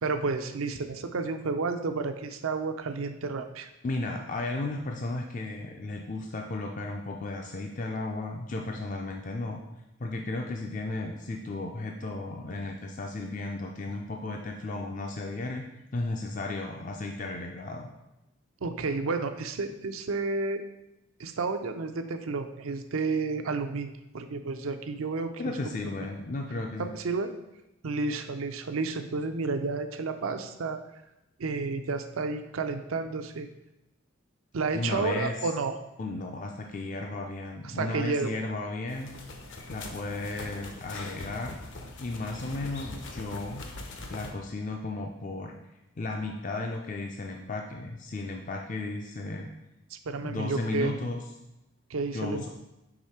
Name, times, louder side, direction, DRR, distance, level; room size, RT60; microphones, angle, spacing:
voice 1, 0.0-3.7 18.6-20.6 21.2-25.3 26.8-27.3 27.8-30.8 31.4-33.5 34.5-35.8 37.6-38.4 50.1-50.9 51.9-52.5, right 4 dB, 80° right, 7 dB, 0.5 m, -31 dB
voice 2, 3.8-9.6 10.0-15.7 15.9-17.9 25.4-26.9 34.7-35.4 36.0-39.1 39.7-41.6 42.0-43.7 44.1-45.5 46.0-49.5 50.2-51.2 52.1-52.5, left 2 dB, 35° left, 2 dB, 0.4 m, -34 dB
sound 1, 38.9-44.3, left 2 dB, 60° left, 0.7 m, -42 dB
4.9 x 3.5 x 5.6 m, 0.93 s
head